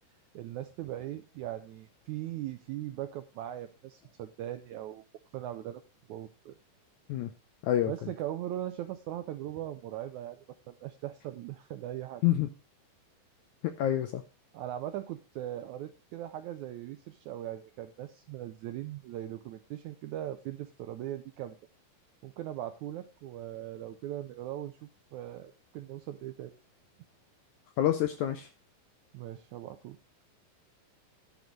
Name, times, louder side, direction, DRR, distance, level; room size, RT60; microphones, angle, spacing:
voice 1, 0.3-5.0 5.3-5.8 6.1-6.5 7.9-10.4 10.7-12.2 14.5-21.6 22.2-26.5 29.1-30.0, right 12 dB, 85° right, 9 dB, 1.7 m, -39 dB
voice 2, 13.6-14.2 27.8-28.5, left 12 dB, 75° left, 8 dB, 1.8 m, -27 dB
11.0 x 6.2 x 5.1 m, 0.32 s
omnidirectional pair, 4.1 m